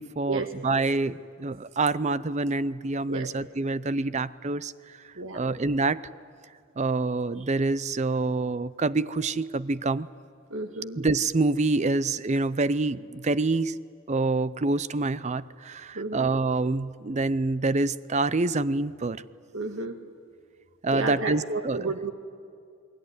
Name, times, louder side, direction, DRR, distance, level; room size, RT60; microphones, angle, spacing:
voice 1, 0.0-4.7 5.3-6.0 6.8-10.1 11.0-13.8 14.1-19.2 20.8-21.9, right 3 dB, 35° right, 16 dB, 0.6 m, -26 dB
voice 2, 5.2-5.5 10.5-11.0 15.9-16.3 19.5-20.0 20.9-22.1, right 3 dB, 70° right, 6 dB, 1.6 m, -32 dB
28.5 x 20.5 x 9.5 m, 2.4 s
head